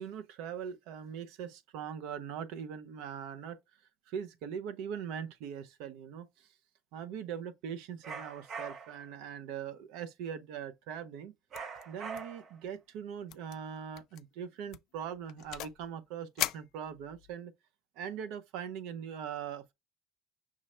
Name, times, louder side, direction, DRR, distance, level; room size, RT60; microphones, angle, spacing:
voice 1, 0.0-3.6 4.1-6.5 6.9-11.3 11.9-17.5 18.0-19.7, right 8 dB, 85° right, 0.6 m, -41 dB
sound 1, 8.0-9.0 11.5-12.6, right 5 dB, 45° right, 0.6 m, -43 dB
sound 2, 11.5-11.8 12.1-12.4 12.7-12.8 13.3-13.6 14.0-14.2 14.7-15.8 16.4-17.4, left 15 dB, 70° left, 0.3 m, -39 dB
6.0 x 2.1 x 4.3 m
cardioid pair, 135°, 0 cm